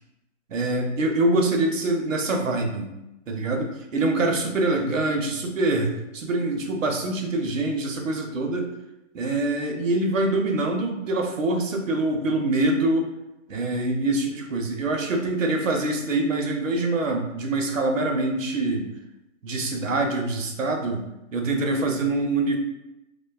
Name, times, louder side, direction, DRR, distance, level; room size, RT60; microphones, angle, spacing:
voice 1, 0.5-2.9 3.3-8.7 9.1-13.1 13.5-18.9 19.4-21.0 21.3-22.6, right 2 dB, 75° right, 3 dB, 0.6 m, -24 dB
2.5 x 2.1 x 2.3 m, 0.92 s
hypercardioid pair, 180°, 39 cm